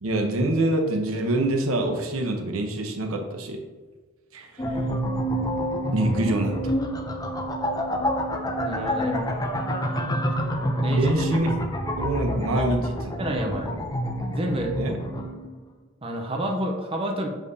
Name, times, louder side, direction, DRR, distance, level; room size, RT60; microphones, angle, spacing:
voice 1, 0.0-3.6 4.3-4.8 5.9-6.6 10.9-11.6 12.0-12.8 13.7-13.8 14.7-15.0, right 1 dB, 85° right, 4 dB, 0.8 m, -25 dB
sound 1, 4.6-15.5, equal, 20° left, 0.5 m, -28 dB
voice 2, 8.6-9.3 10.8-11.1 12.5-12.7 13.2-13.7 14.3-14.7 16.0-17.3, right 1 dB, 25° right, 1 dB, 0.7 m, -29 dB
7.3 x 5.0 x 2.7 m, 1.3 s
head